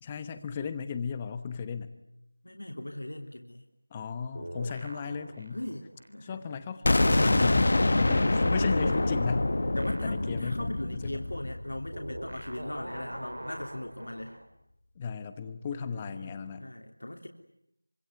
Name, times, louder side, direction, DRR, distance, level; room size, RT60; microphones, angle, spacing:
voice 1, 0.0-1.9 3.9-5.6 6.2-7.7 8.0-9.5 10.0-11.3 15.0-16.7, left 6 dB, 10° left, 11 dB, 1.0 m, -35 dB
voice 2, 2.4-3.6 5.5-6.5 8.8-9.1 9.7-14.4 15.8-16.3 16.6-17.3, left 1 dB, 70° left, 3 dB, 3.3 m, -39 dB
sound 1, 4.3-6.6 6.9-14.5, right 1 dB, 75° right, 4.5 m, -43 dB
sound 2, 6.8-12.6, left 2 dB, 45° left, 1.3 m, -26 dB
25.0 x 25.0 x 9.3 m, 0.80 s
figure-of-eight pair, 175°, 0 cm